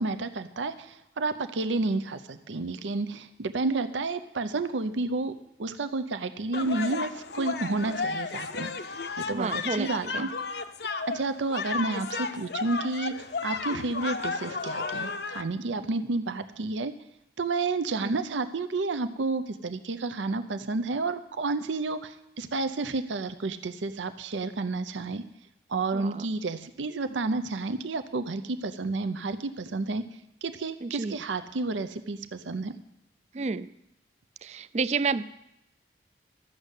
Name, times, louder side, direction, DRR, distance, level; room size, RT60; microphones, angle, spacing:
voice 1, 0.0-5.3 5.6-8.7 9.2-10.3 11.1-16.9 17.4-25.2 25.7-30.0 30.4-32.7, right 3 dB, 90° right, 11 dB, 0.6 m, -30 dB
sound 1, 6.5-15.4, left 4 dB, 65° left, 0.7 m, -33 dB
voice 2, 9.3-10.3 18.0-18.2 25.9-26.3 30.8-31.2 33.3-33.7 34.4-35.2, right 4 dB, 35° right, 16 dB, 0.4 m, -30 dB
13.5 x 6.6 x 8.1 m, 0.86 s
head